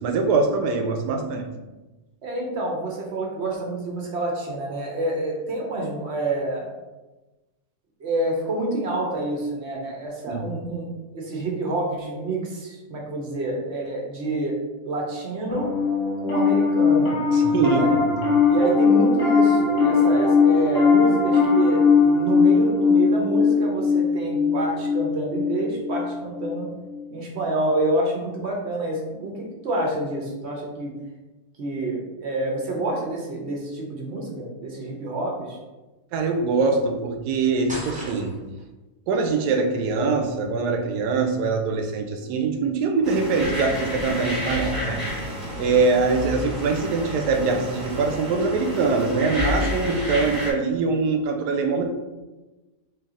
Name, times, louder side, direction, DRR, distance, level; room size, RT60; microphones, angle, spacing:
voice 1, 0.0-1.5 10.3-10.5 17.3-18.3 36.1-38.4 39.1-45.0 45.6-51.8, right 4 dB, 80° right, 4 dB, 1.1 m, -23 dB
voice 2, 2.2-6.7 8.0-10.9 11.1-14.5 14.8-15.7 16.2-17.2 17.7-17.9 18.5-26.7 27.1-30.9 31.6-35.6, right 2 dB, 55° right, -1 dB, 0.8 m, -28 dB
Piano, 15.5-27.0, left 4 dB, 45° left, 0.9 m, -20 dB
sound 1, 37.7-38.6, equal, 5° right, 0.6 m, -35 dB
sound 2, 43.0-50.5, left 1 dB, 15° left, 1.1 m, -30 dB
3.2 x 2.7 x 3.6 m, 1.1 s
omnidirectional pair, 1.8 m